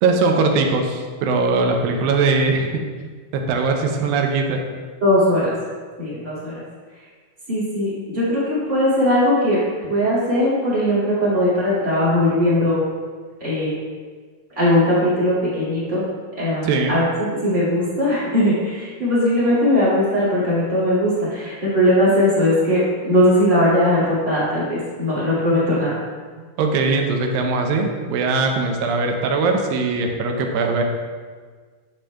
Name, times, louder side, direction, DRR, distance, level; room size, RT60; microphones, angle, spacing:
voice 1, 0.0-2.8 3.3-4.6 16.6-17.0 26.6-30.8, right 3 dB, 80° right, 3 dB, 2.3 m, -20 dB
voice 2, 5.0-5.5 6.0-6.6 7.5-12.8 13.4-13.7 14.5-16.0 16.4-26.0, left 1 dB, 30° right, -9 dB, 1.6 m, -19 dB
9.5 x 6.2 x 2.3 m, 1.5 s
omnidirectional pair, 4.3 m